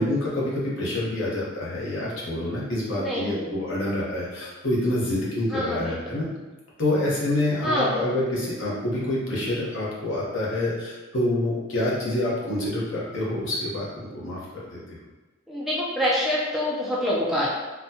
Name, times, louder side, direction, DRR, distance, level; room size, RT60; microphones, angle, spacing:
voice 1, 0.0-6.3 6.8-14.4 14.7-14.8, left 1 dB, 70° left, -6 dB, 1.0 m, -27 dB
voice 2, 2.9-3.6 5.5-6.2 7.6-8.0 15.5-17.5, equal, ahead, -7 dB, 0.5 m, -26 dB
4.0 x 2.3 x 2.7 m, 1.2 s
head